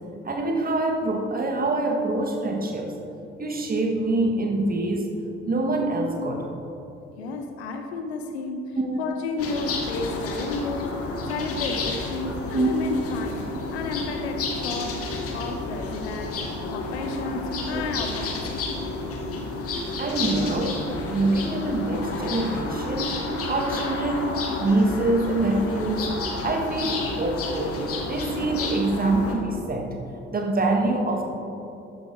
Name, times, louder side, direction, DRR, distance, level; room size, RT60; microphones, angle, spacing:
voice 1, 0.2-2.9 3.4-5.1 5.5-6.5 8.8-9.0 12.5-12.7 17.7-17.8 20.0-24.3 24.6-26.1 26.4-30.0 30.3-31.2, right 2 dB, 25° right, 2 dB, 1.6 m, -25 dB
voice 2, 7.2-11.0 11.3-13.4 13.7-16.4 16.7-18.6, left 3 dB, 75° left, 5 dB, 0.9 m, -32 dB
sound 1, 9.4-29.3, left 3 dB, 45° left, 1.6 m, -31 dB
13.0 x 9.2 x 3.4 m, 2.9 s
figure-of-eight pair, 50°, 33 cm